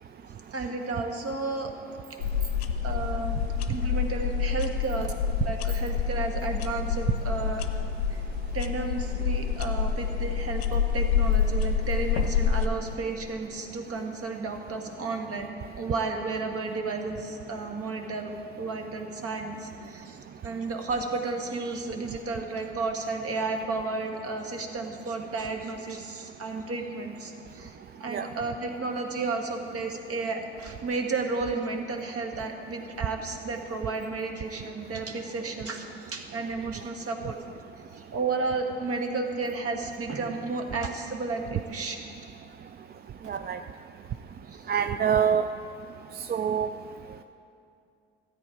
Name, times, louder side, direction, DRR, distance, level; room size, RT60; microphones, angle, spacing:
voice 1, 0.5-1.7 2.8-3.4 3.7-5.1 5.4-7.6 8.1-8.2 8.5-37.4 37.9-42.0 44.5-44.7, right 3 dB, 50° right, 4 dB, 1.5 m, -32 dB
sound 1, 2.2-12.7, left 6 dB, 85° left, 0.6 m, -27 dB
voice 2, 43.3-43.6 44.7-45.5 46.3-46.7, right 8 dB, 35° right, 10 dB, 0.4 m, -25 dB
13.5 x 8.3 x 5.0 m, 2.5 s
hypercardioid pair, 45°, 31 cm